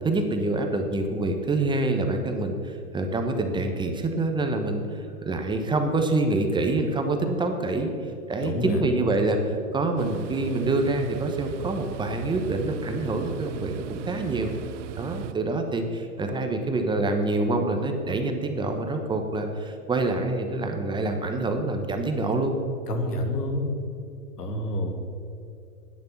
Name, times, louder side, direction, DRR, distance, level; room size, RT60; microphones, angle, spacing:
voice 1, 0.0-7.9 8.3-14.5 15.0-22.6, right 2 dB, 10° right, 4 dB, 0.9 m, -26 dB
voice 2, 8.4-8.8 22.9-23.8 24.4-24.9, left 1 dB, 80° left, 4 dB, 2.3 m, -28 dB
sound 1, 10.0-15.3, right 10 dB, 50° right, 0.7 m, -37 dB
10.5 x 9.7 x 7.1 m, 2.5 s
hypercardioid pair, 120°, 47 cm